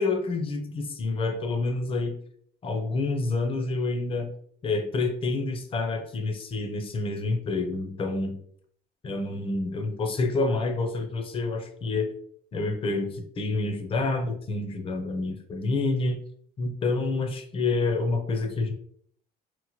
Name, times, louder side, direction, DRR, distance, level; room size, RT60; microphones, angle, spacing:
voice 1, 0.0-2.1 2.6-4.3 4.6-8.4 9.0-12.1 12.5-16.2 16.6-18.7, left 3 dB, 35° left, 6 dB, 0.5 m, -28 dB
3.0 x 2.1 x 2.9 m, 0.62 s
cardioid pair, 110°, 17 cm